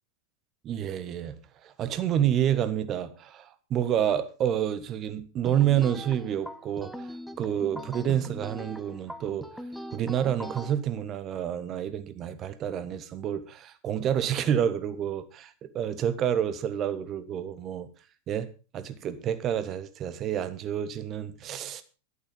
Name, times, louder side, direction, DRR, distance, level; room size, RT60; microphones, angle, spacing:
voice 1, 0.6-9.5 9.9-17.9 18.3-18.5 18.7-21.8, right 10 dB, 30° right, 1.4 m, -29 dB
sound 1, 5.4-10.7, equal, ahead, 1.2 m, -41 dB
12.0 x 11.5 x 5.2 m
figure-of-eight pair, 90°, 0 cm